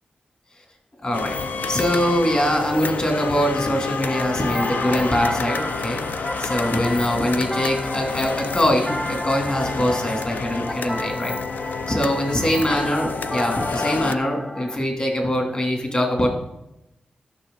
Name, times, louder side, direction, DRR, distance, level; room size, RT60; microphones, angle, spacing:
voice 1, 1.0-1.3 1.7-6.0 6.4-11.3 11.9-16.3, equal, 40° left, 2 dB, 3.0 m, -23 dB
sound 1, 1.1-14.1, left 5 dB, 75° left, 0.5 m, -29 dB
sound 2, 4.0-14.8, equal, 10° left, 0.5 m, -32 dB
12.5 x 6.2 x 4.0 m, 0.86 s
cardioid pair, 80°, 3 cm